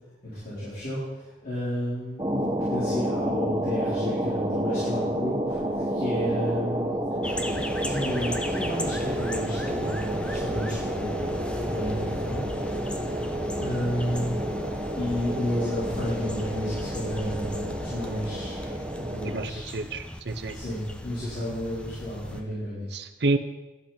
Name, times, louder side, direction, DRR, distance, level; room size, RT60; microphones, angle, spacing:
voice 1, 0.2-5.6 5.9-6.9 7.8-12.4 12.8-12.9 13.6-14.4 15.0-19.7 20.5-22.8, equal, 55° left, -13 dB, 4.5 m, -32 dB
sound 1, 2.2-19.5, equal, 20° right, 0.9 m, -30 dB
sound 2, 7.2-22.4, equal, 5° left, 0.6 m, -37 dB
voice 2, 19.2-20.6 22.9-23.4, right 2 dB, 65° right, 9 dB, 0.7 m, -29 dB
12.5 x 8.0 x 4.4 m, 1.1 s
head